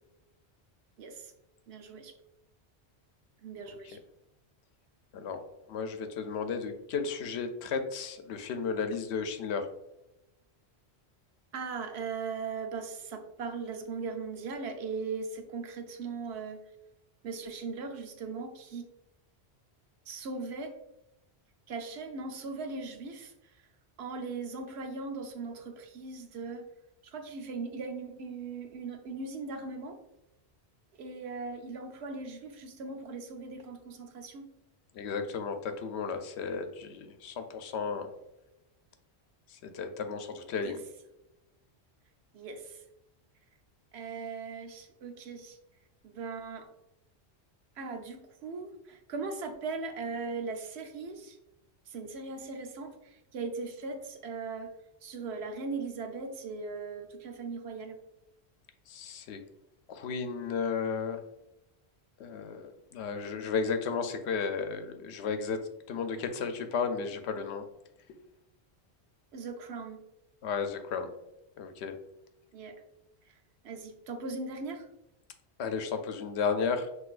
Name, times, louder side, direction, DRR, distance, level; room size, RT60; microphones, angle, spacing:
voice 1, 1.0-1.3 1.7-2.1 3.4-4.0 11.5-16.6 17.2-18.9 20.1-20.7 21.7-23.3 24.0-26.7 27.0-30.0 31.0-34.5 40.6-40.8 42.3-42.8 43.9-45.6 46.0-46.7 47.8-51.4 51.9-54.7 55.0-58.0 69.3-70.0 72.5-72.8 73.6-74.9, right 4 dB, 80° right, 5 dB, 0.9 m, -39 dB
voice 2, 5.1-5.4 5.7-9.7 34.9-38.1 39.5-40.8 58.9-59.4 59.9-61.2 62.2-65.6 65.9-67.6 70.4-71.1 71.6-71.9 75.6-76.9, left 5 dB, 85° left, 8 dB, 0.9 m, -33 dB
6.2 x 2.7 x 2.4 m, 0.90 s
omnidirectional pair, 1.1 m